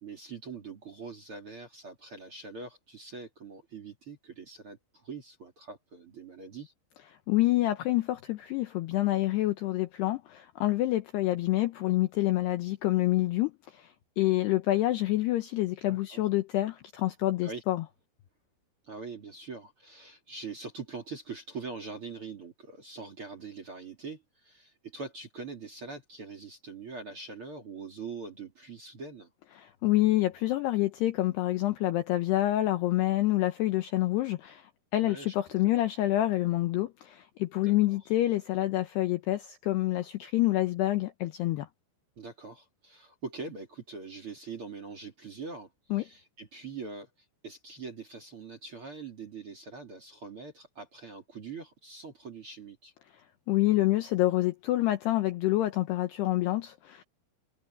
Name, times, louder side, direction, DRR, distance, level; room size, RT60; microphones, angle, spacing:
voice 1, 0.0-6.7 15.9-16.2 17.4-17.6 18.9-29.3 35.0-35.4 37.6-38.1 42.2-47.1 47.4-52.9, right 4 dB, 35° right, 2.3 m, -43 dB
voice 2, 7.3-17.8 29.6-34.7 34.9-41.7 45.9-46.0 53.5-57.0, left 16 dB, 85° left, 2.4 m, -27 dB
omnidirectional pair, 6.0 m